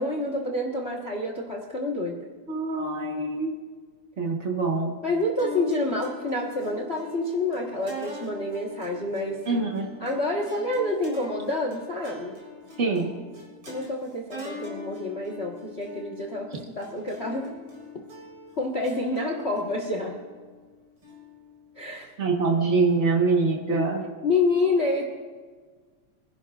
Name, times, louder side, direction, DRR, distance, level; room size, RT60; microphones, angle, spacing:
voice 1, 0.0-2.2 5.0-9.4 10.0-12.4 13.7-17.5 18.6-20.2 21.8-22.1 23.7-23.8 24.2-25.0, left 2 dB, 50° left, 0 dB, 0.7 m, -28 dB
voice 2, 2.5-3.5 4.2-5.0 9.5-9.9 12.8-13.2 22.2-24.0, right 3 dB, 70° right, 0 dB, 0.6 m, -24 dB
sound 1, 5.4-21.8, left 3 dB, 50° right, 5.0 m, -42 dB
25.0 x 11.0 x 2.4 m, 1.5 s
omnidirectional pair, 3.4 m